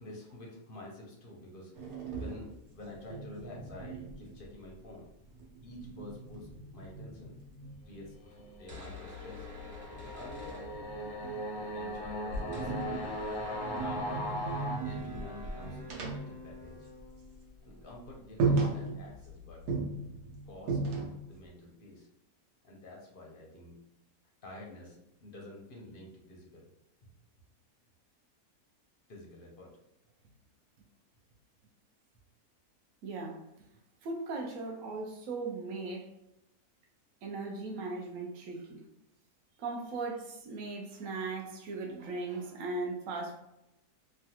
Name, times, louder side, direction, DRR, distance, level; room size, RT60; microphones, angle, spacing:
voice 1, 0.0-5.1 5.6-7.3 7.8-9.5 10.0-13.1 13.7-14.1 14.8-16.9 17.6-19.6 20.5-20.8 21.3-22.1 22.6-23.8 24.4-26.7 29.1-29.7, left 2 dB, 55° left, -2 dB, 0.6 m, -49 dB
sound 1, 1.7-4.9 5.2-8.1 9.5-11.5 11.9-17.2 17.5-17.7 18.0-18.1 18.4-19.3 19.7-21.4, right 3 dB, 85° right, 1.2 m, -36 dB
sound 2, 8.1-14.8, equal, 85° left, 1.1 m, -39 dB
sound 3, 8.7-11.3 11.5-11.6 11.8-21.2, left 3 dB, 35° right, 1.0 m, -50 dB
voice 2, 33.0-33.4 34.0-36.1 37.2-38.8 39.6-43.4, right 3 dB, 70° right, 1 dB, 0.9 m, -38 dB
3.1 x 2.3 x 2.8 m, 0.86 s
omnidirectional pair, 1.7 m